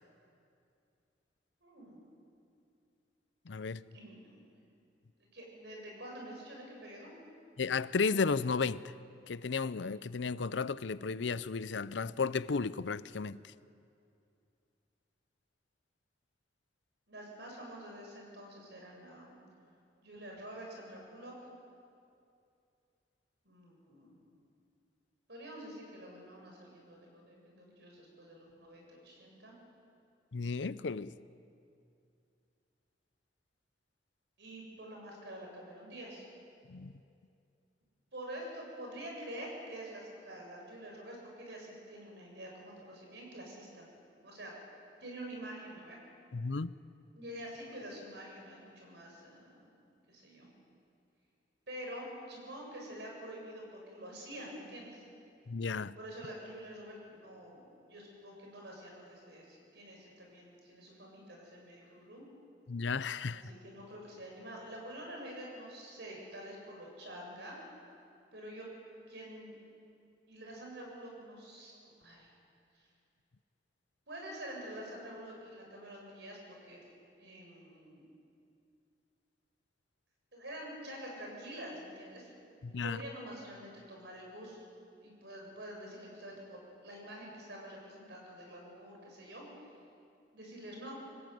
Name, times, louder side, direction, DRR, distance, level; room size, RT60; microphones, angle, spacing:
voice 1, 1.6-2.0 3.9-4.4 5.3-7.2 17.1-19.4 20.0-21.3 23.4-24.2 25.3-29.6 34.4-36.2 38.1-43.9 44.2-44.5 45.0-46.0 47.1-49.8 50.1-50.5 51.7-55.0 56.0-62.3 63.3-67.6 68.3-68.7 69.1-69.6 70.3-71.7 72.0-72.3 72.7-72.9 74.1-76.8 77.2-78.1 80.3-82.3 82.8-84.6 85.0-89.5 90.3-91.0, right 1 dB, 65° right, 7.7 m, -47 dB
voice 2, 3.5-3.8 7.6-8.9 9.3-13.4 30.3-31.1 36.7-36.9 46.3-46.7 55.5-55.9 62.7-63.4 82.6-83.0, left 4 dB, 75° left, 0.6 m, -33 dB
25.0 x 19.5 x 9.3 m
head